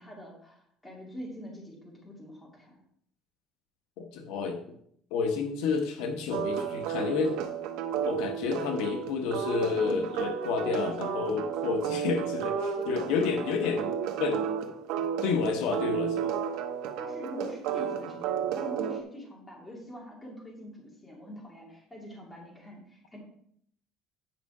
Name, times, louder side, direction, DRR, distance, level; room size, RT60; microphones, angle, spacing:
voice 1, 0.0-2.7 12.0-12.1 12.8-13.4 17.0-23.2, left 1 dB, 10° left, -1 dB, 2.3 m, -44 dB
voice 2, 4.0-4.6 5.1-7.3 8.0-13.9 14.2-14.4 15.2-16.3, left 5 dB, 75° left, 5 dB, 1.2 m, -30 dB
sound 1, 6.3-19.0, right 8 dB, 70° right, 0.9 m, -32 dB
9.2 x 5.6 x 4.9 m, 0.68 s
cardioid pair, 170°, 0 cm